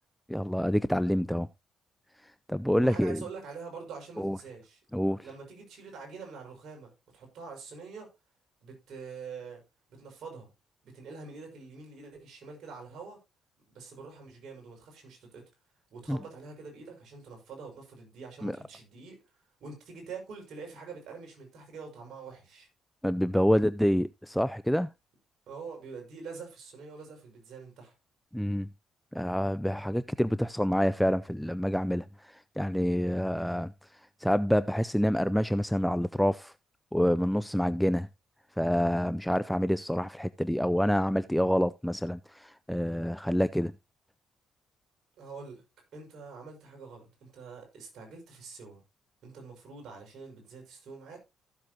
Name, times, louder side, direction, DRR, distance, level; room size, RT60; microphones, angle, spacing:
voice 1, 0.3-1.5 2.5-3.2 4.2-4.4 4.9-5.2 16.1-16.2 18.4-18.6 23.0-24.9 28.3-28.7 29.1-33.7 34.2-36.5 36.9-38.1 38.6-43.7, equal, 5° left, 0.5 m, -27 dB
voice 2, 2.8-4.8 5.2-8.1 8.6-9.6 9.9-10.5 10.8-13.2 13.7-15.5 15.9-19.2 19.6-22.7 25.5-27.9 45.2-45.6 45.9-48.8 49.2-51.2, right 4 dB, 70° right, 6.0 m, -45 dB
15.0 x 7.5 x 2.9 m
supercardioid pair, 65°, 0 cm